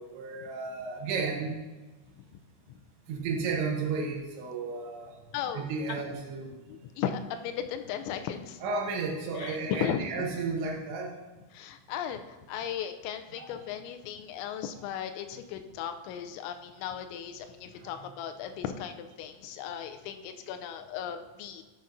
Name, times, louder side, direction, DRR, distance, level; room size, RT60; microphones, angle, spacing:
voice 1, 0.0-1.6 3.1-5.2 5.5-6.5 8.6-11.1 13.3-13.7 17.8-18.1, right 4 dB, 80° right, 0 dB, 3.5 m, -33 dB
voice 2, 5.3-6.0 6.6-8.6 9.4-10.2 11.5-21.6, left 9 dB, 85° left, 7 dB, 2.9 m, -36 dB
11.5 x 7.1 x 2.6 m, 1.2 s
omnidirectional pair, 5.2 m